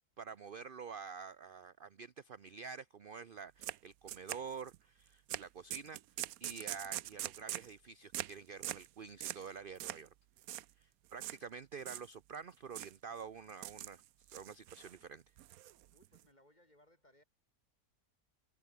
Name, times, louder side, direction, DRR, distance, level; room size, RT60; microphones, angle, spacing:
voice 1, 0.0-10.1 10.8-14.0 14.3-15.2, right 6 dB, 45° right, 0.8 m, -48 dB
sound 1, 3.6-3.8 4.1-4.8 5.3-5.4 5.7-7.7 8.1-8.4 8.6-8.9 9.2-9.5 9.8-10.1 10.4-10.7 11.2-11.4 11.8-12.4 12.7-13.0 13.5-14.0 14.3-15.0 15.4-16.2, right 14 dB, 75° right, 1.1 m, -42 dB
voice 2, 15.9-17.2, left 1 dB, 25° left, 6.4 m, -66 dB
omnidirectional pair, 1.6 m